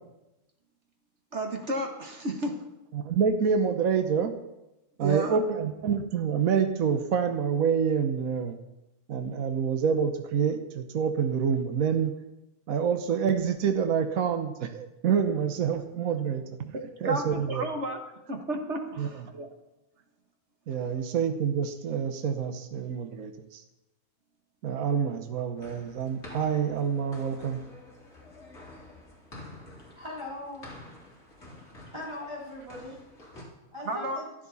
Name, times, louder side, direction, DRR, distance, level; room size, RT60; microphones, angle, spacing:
voice 1, 1.3-2.7 5.0-5.7 16.7-18.0 18.3-19.5 33.9-34.2, right 2 dB, 50° right, 4 dB, 1.7 m, -32 dB
voice 2, 2.9-4.3 5.0-8.6 9.1-12.2 12.7-16.6 17.0-17.7 19.0-19.2 20.7-23.6 24.6-27.6, right 7 dB, 65° right, 6 dB, 1.4 m, -27 dB
sound 1, 25.6-33.4, left 1 dB, 45° left, 3.8 m, -49 dB
voice 3, 29.9-30.7 31.9-33.0 33.7-34.3, left 2 dB, 15° right, -6 dB, 4.0 m, -39 dB
15.5 x 13.0 x 4.1 m, 0.95 s
omnidirectional pair, 1.6 m